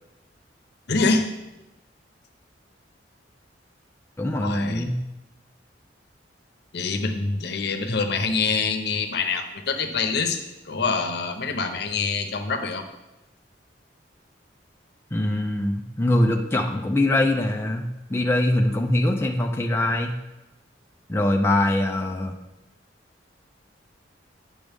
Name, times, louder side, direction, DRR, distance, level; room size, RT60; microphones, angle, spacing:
voice 1, 0.9-1.3 4.4-4.8 6.7-10.4 10.7-12.9, left 4 dB, 65° left, 5 dB, 0.8 m, -25 dB
voice 2, 4.2-5.0 15.1-20.1 21.1-22.3, left 1 dB, 15° left, 2 dB, 0.5 m, -23 dB
9.3 x 6.2 x 3.5 m, 0.99 s
head